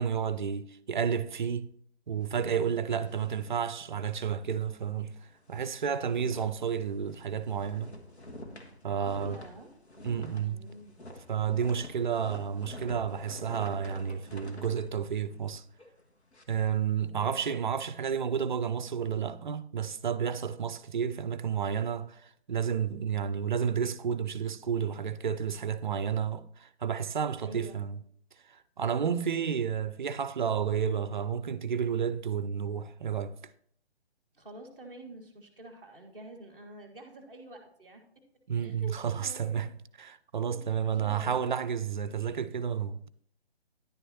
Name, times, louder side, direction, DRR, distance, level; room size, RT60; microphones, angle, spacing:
voice 1, 0.0-1.7 2.1-5.2 5.5-7.9 8.8-9.4 10.0-10.7 11.3-15.6 16.5-28.0 28.5-33.4 38.5-39.7 40.0-43.0, right 7 dB, 45° right, 0.4 m, -31 dB
sound 1, 2.2-4.5 4.8-4.9 5.3-16.4, left 1 dB, 80° left, 1.6 m, -48 dB
voice 2, 2.9-3.5 9.2-9.7 10.4-11.0 17.1-17.4 27.4-27.8 29.0-29.6 34.3-38.0 38.5-38.9 39.2-39.6 40.4-40.6 40.9-41.5, right 1 dB, 5° left, 0.6 m, -48 dB
10.5 x 9.0 x 2.8 m
figure-of-eight pair, 140°, 33 cm